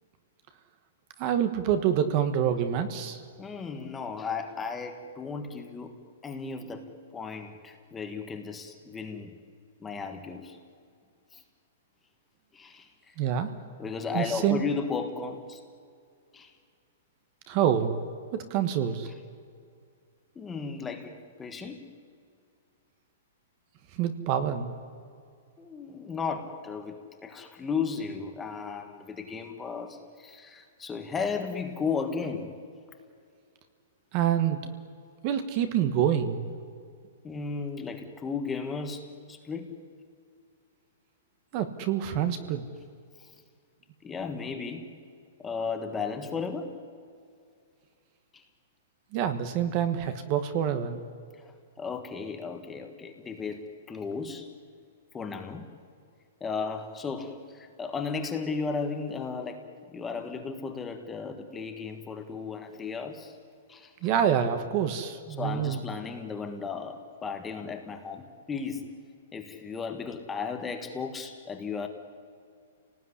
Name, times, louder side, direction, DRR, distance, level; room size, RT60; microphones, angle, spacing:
voice 1, 1.2-3.2 13.2-13.5 14.1-14.6 17.5-17.9 18.3-19.1 24.0-24.7 34.1-34.7 35.2-36.4 41.5-42.6 49.1-51.0 64.0-65.8, right 9 dB, 25° right, 9 dB, 1.4 m, -26 dB
voice 2, 3.4-5.9 6.2-9.4 9.8-10.6 11.3-11.4 12.5-12.9 13.8-15.6 16.3-16.5 20.3-21.8 25.6-32.6 37.2-39.7 44.0-44.9 45.4-46.7 48.3-48.4 51.8-54.5 55.1-55.7 56.4-59.6 59.9-63.4 63.7-63.9 65.4-69.0 69.3-71.9, left 5 dB, 10° left, 5 dB, 1.5 m, -35 dB
29.5 x 19.0 x 9.9 m, 2.3 s
hypercardioid pair, 180°, 0 cm